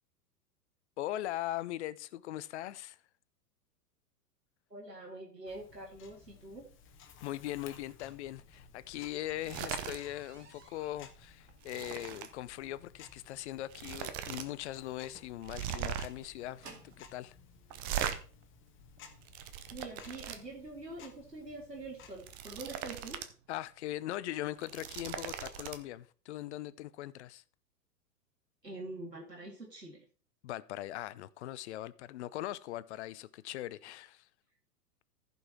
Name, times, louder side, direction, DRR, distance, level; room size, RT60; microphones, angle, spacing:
voice 1, 1.0-3.0 7.2-16.7 17.0-17.4 23.5-27.4 30.4-34.3, left 14 dB, 45° left, 0.6 m, -40 dB
voice 2, 4.7-6.7 19.7-23.2 28.6-30.0, right 2 dB, 90° right, 2.5 m, -45 dB
Tick-tock, 5.5-22.3, left 5 dB, 25° left, 1.4 m, -57 dB
sound 1, 8.2-17.1 18.0-18.1 18.7-18.9 19.2-19.3 19.6-19.7, right 4 dB, 70° right, 2.7 m, -59 dB
sound 2, 9.3-10.0 10.4-10.6 11.0-12.3 13.2-13.3 13.7-14.5 14.8-14.9 15.4-16.3 17.7-18.2 19.0-20.4 22.0-23.3 23.7-23.8 24.5-25.8, right 10 dB, 15° right, 0.4 m, -39 dB
14.5 x 5.5 x 4.4 m
figure-of-eight pair, 95°, 47 cm